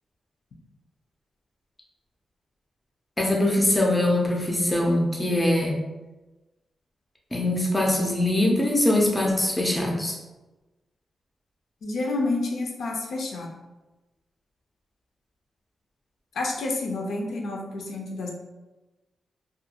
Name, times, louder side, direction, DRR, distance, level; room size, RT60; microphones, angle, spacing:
voice 1, 3.2-5.8 7.3-10.2, left 1 dB, 10° left, -1 dB, 0.4 m, -22 dB
voice 2, 11.8-13.5 16.3-18.3, left 2 dB, 75° left, 0 dB, 0.4 m, -29 dB
2.5 x 2.3 x 2.7 m, 1.1 s
wide cardioid pair, 150°, 0 cm